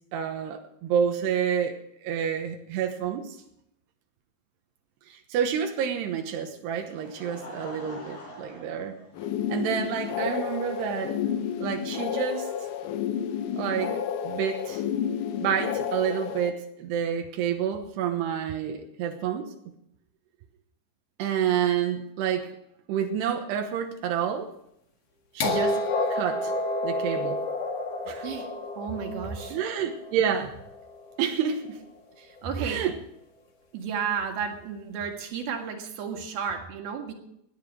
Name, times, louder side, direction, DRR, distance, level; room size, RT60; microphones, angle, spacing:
voice 1, 0.1-1.7 2.0-3.4 5.1-9.0 9.5-11.2 11.6-12.5 13.6-14.0 14.2-14.8 15.4-19.5 21.2-22.5 22.9-24.5 25.3-25.8 26.1-26.5 26.8-27.4 28.1-28.3 29.5-30.6 31.2-31.8 32.6-33.0, right 8 dB, 85° right, 4 dB, 3.3 m, -28 dB
Laughter, 6.5-9.7 10.5-10.6 12.1-12.2, equal, 90° left, 6.3 m, -44 dB
sound 1, 9.1-16.5, left 9 dB, 75° left, 2.0 m, -31 dB
sound 2, 25.4-31.3 32.4-32.5, left 2 dB, 50° left, 2.4 m, -30 dB
voice 2, 28.8-29.6 32.2-32.8 33.7-37.1, right 6 dB, 70° right, 3 dB, 3.7 m, -32 dB
18.0 x 10.5 x 6.1 m, 0.78 s
omnidirectional pair, 4.6 m